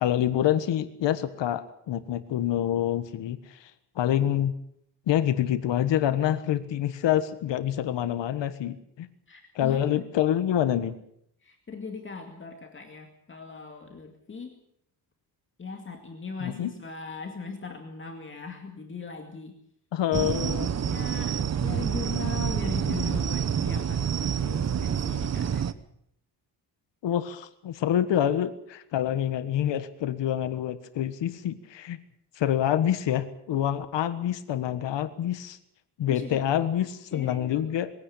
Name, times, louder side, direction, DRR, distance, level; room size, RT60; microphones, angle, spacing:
voice 1, 0.0-4.5 5.1-9.1 9.5-11.0 16.4-16.7 19.9-20.7 27.0-32.0 32.3-35.6 36.0-37.9, left 11 dB, 80° left, 12 dB, 1.5 m, -27 dB
voice 2, 9.3-10.1 11.4-14.6 15.6-19.6 20.5-25.7 36.1-37.7, left 4 dB, 30° left, 3 dB, 2.3 m, -40 dB
sound 1, 20.1-25.7, right 8 dB, 40° right, 1.0 m, -28 dB
22.5 x 16.5 x 8.5 m, 0.70 s
wide cardioid pair, 165°, 42 cm